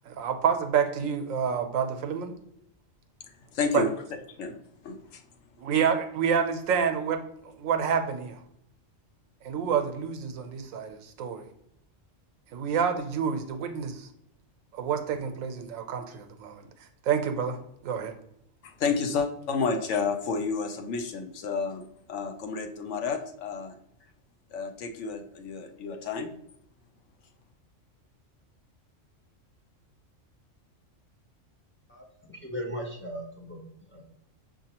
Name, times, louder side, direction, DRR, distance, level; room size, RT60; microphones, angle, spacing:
voice 1, 0.1-2.3 3.7-3.8 5.6-8.4 9.4-11.4 12.5-14.1 14.7-16.6 17.0-17.6 17.8-18.1, right 7 dB, 85° right, 6 dB, 1.0 m, -28 dB
voice 2, 3.3-3.9 4.4-4.6 4.8-5.2 18.6-23.7 24.5-26.3, left 5 dB, 70° left, 5 dB, 0.9 m, -31 dB
voice 3, 31.9-33.6 33.9-34.0, equal, 15° left, -1 dB, 0.5 m, -37 dB
5.9 x 2.7 x 2.8 m, 0.73 s
omnidirectional pair, 1.3 m